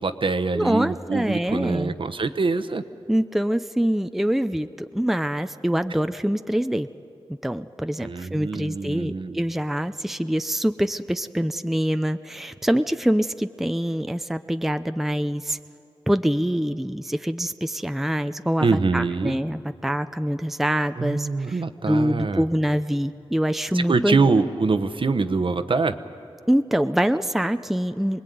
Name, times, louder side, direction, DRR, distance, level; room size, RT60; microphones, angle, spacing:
voice 1, 0.0-2.8 8.0-9.4 18.6-19.4 21.0-22.4 23.7-26.0, right 4 dB, 55° right, 9 dB, 1.0 m, -24 dB
voice 2, 0.5-1.9 3.1-6.9 7.4-15.6 16.1-24.2 26.5-28.2, equal, 5° right, 10 dB, 0.6 m, -25 dB
25.0 x 20.0 x 9.4 m, 2.7 s
wide cardioid pair, 70°, 10 cm